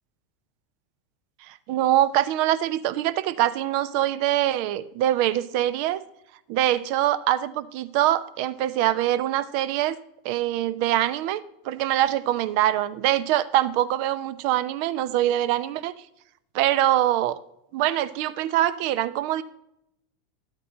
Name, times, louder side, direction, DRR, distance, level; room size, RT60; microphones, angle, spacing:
voice 1, 1.5-6.0 6.5-10.0 10.2-15.9 16.5-17.4 17.7-19.4, right 13 dB, 60° right, 15 dB, 0.6 m, -24 dB
11.5 x 8.3 x 3.8 m, 0.78 s
hypercardioid pair, 95°, 0 cm